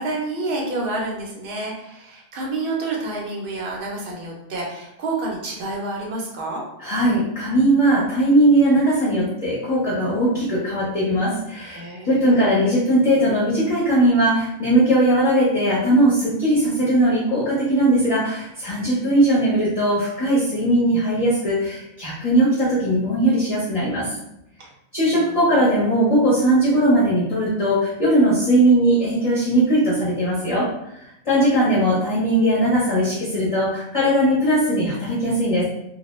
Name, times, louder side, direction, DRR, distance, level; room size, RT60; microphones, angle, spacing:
voice 1, 0.0-6.6 11.7-12.4 24.6-24.7 25.1-25.6, right 2 dB, 55° right, -2 dB, 0.7 m, -29 dB
voice 2, 6.8-24.2 24.9-30.7 30.9-35.7, right 1 dB, 35° left, -9 dB, 0.6 m, -19 dB
2.2 x 2.1 x 3.0 m, 0.83 s
omnidirectional pair, 1.3 m